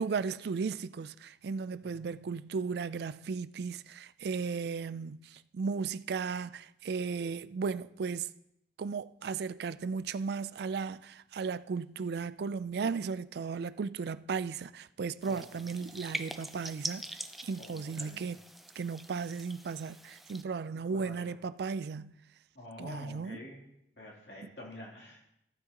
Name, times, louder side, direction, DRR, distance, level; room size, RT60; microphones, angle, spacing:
voice 1, 0.0-8.3 8.8-17.1 17.4-18.4 18.8-22.1 22.8-23.4, right 5 dB, 60° right, 0.3 m, -35 dB
sound 1, 15.2-20.4, right 1 dB, ahead, 0.5 m, -43 dB
voice 2, 17.6-18.3 20.9-21.3 22.5-23.6 24.0-25.2, left 1 dB, 65° left, 3.1 m, -48 dB
14.5 x 9.6 x 2.9 m
head